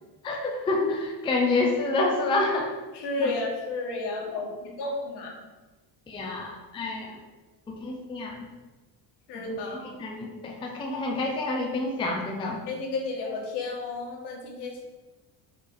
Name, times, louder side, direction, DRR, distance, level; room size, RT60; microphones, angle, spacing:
voice 1, 0.2-2.7 3.2-3.3 6.1-7.2 7.7-8.5 9.3-9.6 10.0-12.6, left 2 dB, 10° left, 0 dB, 0.4 m, -28 dB
voice 2, 2.9-5.4 9.3-9.9 12.7-14.8, left 3 dB, 65° left, -1 dB, 1.5 m, -32 dB
5.7 x 4.6 x 3.8 m, 1.2 s
cardioid pair, 180°, 43 cm